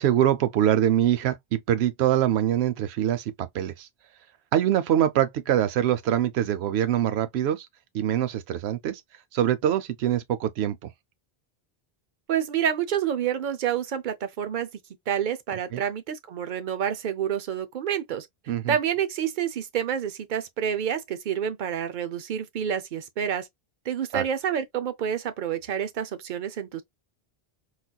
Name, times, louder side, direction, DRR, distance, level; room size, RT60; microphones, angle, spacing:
voice 1, 0.0-3.9 4.5-7.7 7.9-9.0 9.3-10.9 15.7-15.8 18.5-18.7 24.1-24.2, right 11 dB, 85° right, 0.8 m, -24 dB
voice 2, 12.3-14.7 15.1-18.3 18.7-23.5 23.9-26.8, right 9 dB, 60° right, 0.6 m, -28 dB
4.0 x 2.4 x 2.2 m
omnidirectional pair, 1.0 m